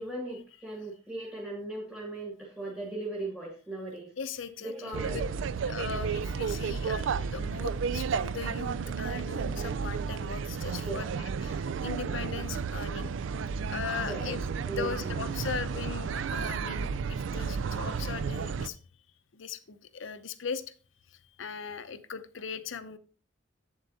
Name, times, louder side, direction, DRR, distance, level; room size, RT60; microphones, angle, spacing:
voice 1, 0.0-4.1 4.6-5.3 5.7-5.8 6.4-6.5 10.8-11.1 14.0-14.3 14.6-15.3, right 2 dB, 5° right, -2 dB, 1.3 m, -38 dB
voice 2, 4.2-5.2 5.5-13.1 13.7-14.4 14.7-18.8 19.3-20.6 21.1-23.0, left 6 dB, 75° left, 11 dB, 0.7 m, -39 dB
sound 1, 4.9-18.7, right 6 dB, 70° right, 0.4 m, -32 dB
8.0 x 7.5 x 2.7 m, 0.39 s
head